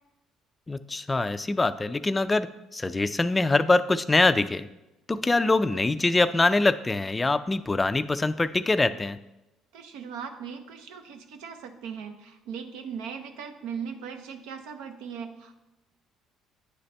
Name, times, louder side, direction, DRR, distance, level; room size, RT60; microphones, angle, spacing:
voice 1, 0.7-2.5 2.7-4.7 5.1-9.2, left 2 dB, 20° left, 13 dB, 0.3 m, -24 dB
voice 2, 9.7-15.5, right 7 dB, 85° right, 7 dB, 0.6 m, -39 dB
9.5 x 4.0 x 3.3 m, 0.95 s
supercardioid pair, 85°, 0 cm